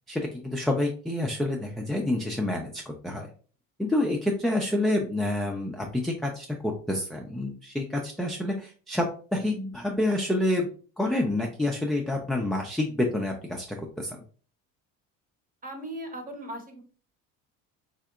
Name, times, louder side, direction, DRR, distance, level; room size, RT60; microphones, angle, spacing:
voice 1, 0.1-3.3 3.8-9.1 9.3-10.7 11.0-14.2, left 1 dB, ahead, 0 dB, 0.3 m, -28 dB
voice 2, 15.6-16.8, right 1 dB, 20° right, 4 dB, 0.8 m, -38 dB
3.3 x 2.8 x 2.4 m, 0.40 s
supercardioid pair, 90°, 37 cm